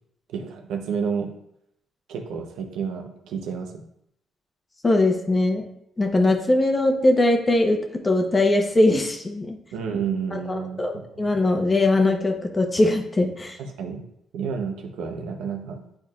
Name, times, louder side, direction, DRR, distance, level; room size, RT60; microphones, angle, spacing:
voice 1, 0.3-1.3 2.1-3.9 9.7-11.2 13.6-14.0 14.3-15.8, right 6 dB, 85° right, 3 dB, 0.8 m, -30 dB
voice 2, 4.8-5.6 6.0-7.8 8.0-9.6 10.3-13.6, left 2 dB, 25° left, 4 dB, 0.9 m, -21 dB
8.8 x 4.4 x 2.4 m, 0.76 s
cardioid pair, 90°, 0 cm